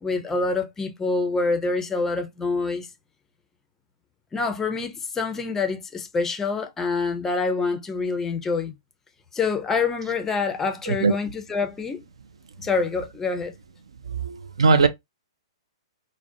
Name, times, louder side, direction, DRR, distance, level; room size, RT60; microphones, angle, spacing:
voice 1, 0.0-2.9 4.3-8.7 9.3-12.0 12.6-13.5, left 4 dB, 15° left, 0.4 m, -26 dB
voice 2, 14.0-14.9, right 4 dB, 75° right, 0.4 m, -20 dB
2.4 x 2.1 x 2.5 m
figure-of-eight pair, 120°, 3 cm